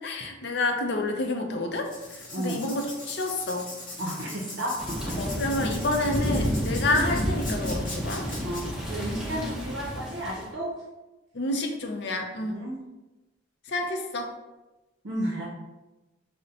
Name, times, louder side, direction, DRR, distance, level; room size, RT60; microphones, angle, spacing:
voice 1, 0.0-3.7 5.2-8.3 9.3-9.4 11.3-12.6 13.7-14.3, left 2 dB, 55° left, 3 dB, 0.5 m, -29 dB
Writing, 1.8-8.6, left 2 dB, 40° left, 0.8 m, -40 dB
voice 2, 2.3-2.6 4.0-5.2 8.4-10.7 12.4-12.7 15.0-15.4, right 1 dB, 60° right, -3 dB, 0.6 m, -32 dB
Thunder / Rain, 4.8-10.5, equal, 5° right, 0.5 m, -30 dB
5.2 x 2.1 x 2.7 m, 1.1 s
head